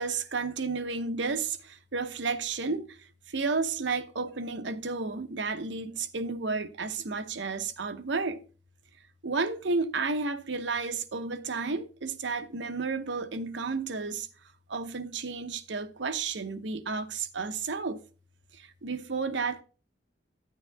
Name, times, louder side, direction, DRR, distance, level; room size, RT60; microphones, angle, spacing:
voice 1, 0.0-8.4 9.2-14.3 14.7-18.0 18.5-19.6, right 4 dB, 80° right, 0.9 m, -32 dB
11.0 x 9.8 x 2.2 m
head